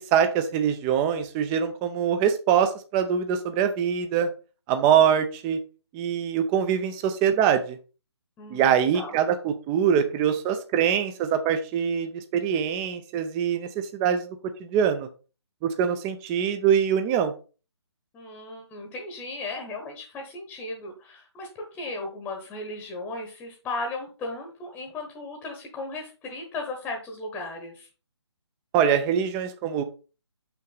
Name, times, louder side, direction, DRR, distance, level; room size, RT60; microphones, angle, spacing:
voice 1, 0.0-4.3 4.7-5.6 5.9-7.8 8.5-14.3 14.6-15.1 15.6-17.3 28.7-29.8, right 8 dB, 15° right, 8 dB, 0.5 m, -23 dB
voice 2, 8.4-9.1 18.1-27.9, left 2 dB, 10° left, 2 dB, 1.0 m, -36 dB
6.5 x 5.8 x 3.9 m, 0.35 s
figure-of-eight pair, 140°, 14 cm